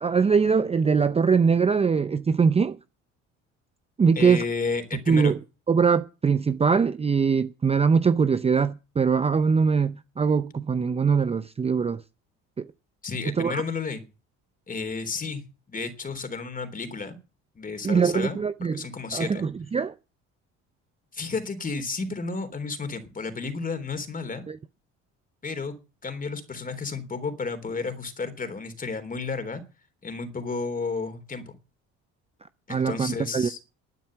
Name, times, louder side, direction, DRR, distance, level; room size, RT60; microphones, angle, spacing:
voice 1, 0.0-2.8 4.0-4.4 5.1-5.4 5.7-12.0 12.6-12.7 13.3-13.6 17.8-18.9 19.1-19.9 24.5-24.6 32.7-33.5, right 5 dB, 20° right, 0.6 m, -22 dB
voice 2, 4.2-5.4 13.0-14.1 14.7-17.2 17.6-18.4 18.7-19.4 21.1-24.4 25.4-29.6 30.0-31.6 32.7-33.6, left 4 dB, 25° left, 3.5 m, -32 dB
12.5 x 9.3 x 7.8 m
cardioid pair, 100°, 30 cm